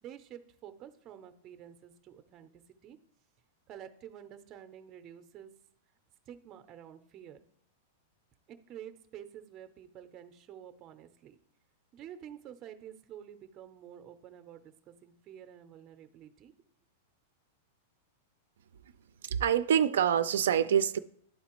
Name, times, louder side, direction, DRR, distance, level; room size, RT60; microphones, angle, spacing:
voice 1, 0.0-3.0 3.7-5.5 6.3-7.4 8.5-11.4 11.9-16.5, right 10 dB, 25° right, 0.5 m, -49 dB
voice 2, 19.2-21.0, right 9 dB, 85° right, 0.3 m, -26 dB
11.5 x 4.0 x 2.9 m
supercardioid pair, 165°, 0 cm